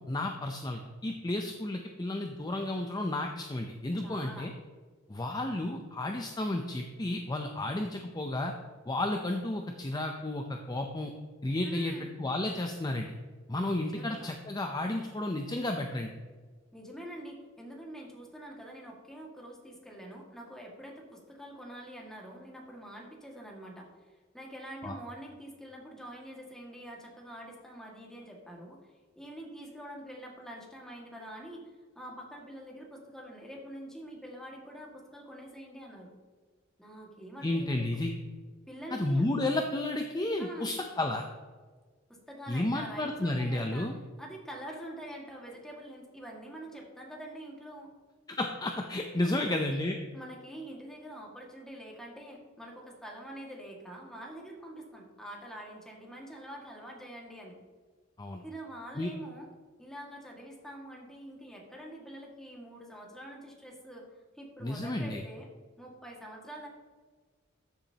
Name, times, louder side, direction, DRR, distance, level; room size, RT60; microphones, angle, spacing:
voice 1, 0.0-4.5 5.1-8.5 8.9-11.1 11.4-13.1 13.5-16.1 24.8-25.0 37.4-38.1 38.9-41.3 42.5-44.0 48.3-50.0 58.2-58.4 59.0-59.1 64.6-65.2, left 1 dB, 20° left, 4 dB, 0.6 m, -32 dB
voice 2, 4.0-4.5 11.6-12.1 13.6-14.3 16.7-28.8 29.2-36.1 36.8-38.0 38.7-39.2 40.4-40.7 42.1-43.9 44.2-47.9 49.2-49.6 50.1-57.6 58.4-59.5 59.8-64.1 64.4-65.5 65.8-66.7, right 1 dB, 5° left, -2 dB, 1.9 m, -45 dB
13.5 x 7.2 x 2.9 m, 1.4 s
head